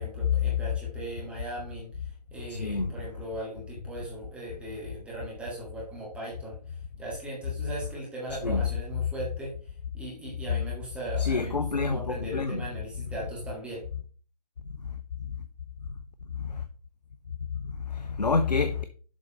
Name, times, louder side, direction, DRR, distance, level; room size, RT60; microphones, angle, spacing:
voice 1, 0.0-1.9 2.3-9.5 9.9-13.8, right 2 dB, 5° right, 1.5 m, -39 dB
voice 2, 2.5-2.9 8.4-8.6 11.2-12.6 16.4-16.6 17.6-18.8, left 4 dB, 80° left, 0.7 m, -28 dB
7.3 x 3.9 x 5.3 m
figure-of-eight pair, 140°, 21 cm